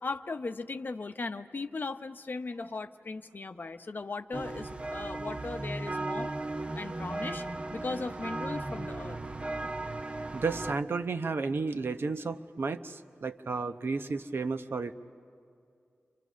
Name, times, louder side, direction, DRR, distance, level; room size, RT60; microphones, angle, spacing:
voice 1, 0.0-6.3 6.7-7.5 7.7-9.2, left 3 dB, 50° left, 8 dB, 0.8 m, -37 dB
sound 1, 4.3-10.8, right 2 dB, 30° right, 0.7 m, -36 dB
voice 2, 10.3-14.9, right 4 dB, 65° right, 8 dB, 0.8 m, -32 dB
30.0 x 25.0 x 6.2 m, 2.4 s
wide cardioid pair, 70°, 4 cm